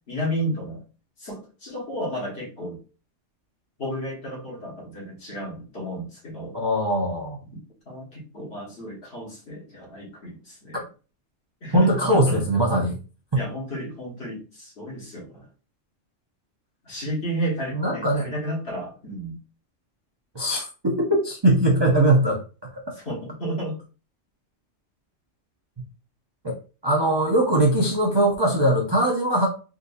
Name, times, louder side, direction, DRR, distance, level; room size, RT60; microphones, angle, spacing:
voice 1, 0.1-0.8 1.2-2.8 3.8-6.6 7.4-7.6 7.9-10.8 11.6-12.4 13.3-15.5 16.8-19.4 23.0-23.8, equal, 55° left, -3 dB, 1.5 m, -32 dB
voice 2, 6.5-7.4 11.7-13.0 17.7-18.3 20.3-22.4 22.7-22.8 26.4-26.5 26.8-29.5, right 1 dB, 35° right, -1 dB, 0.4 m, -21 dB
3.8 x 2.6 x 2.6 m, 0.34 s
omnidirectional pair, 1.3 m